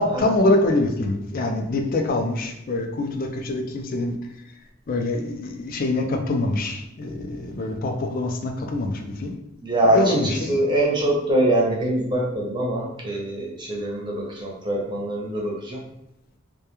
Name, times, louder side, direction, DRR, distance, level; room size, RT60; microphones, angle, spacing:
voice 1, 0.0-4.2 4.9-9.3 9.9-10.5, left 2 dB, 45° left, 4 dB, 0.3 m, -24 dB
voice 2, 9.6-15.8, right 1 dB, 20° right, -3 dB, 0.6 m, -23 dB
2.2 x 2.1 x 2.9 m, 0.82 s
head